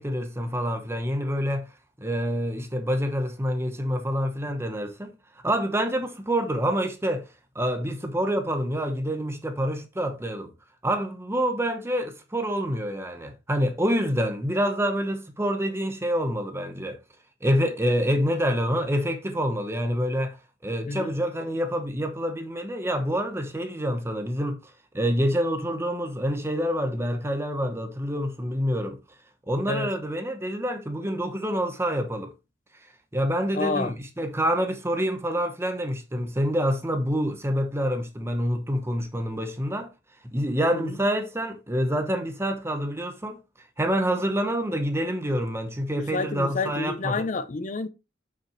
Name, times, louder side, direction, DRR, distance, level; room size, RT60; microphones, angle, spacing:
voice 1, 0.0-1.7 2.0-5.1 5.4-7.2 7.5-10.5 10.8-17.0 17.4-20.4 20.6-29.0 29.5-32.3 33.1-39.9 40.3-43.4 43.8-47.2, equal, 15° right, 0.9 m, -27 dB
voice 2, 33.5-33.9 40.7-41.0 46.0-47.9, left 3 dB, 45° left, 0.5 m, -29 dB
7.4 x 6.0 x 3.0 m
head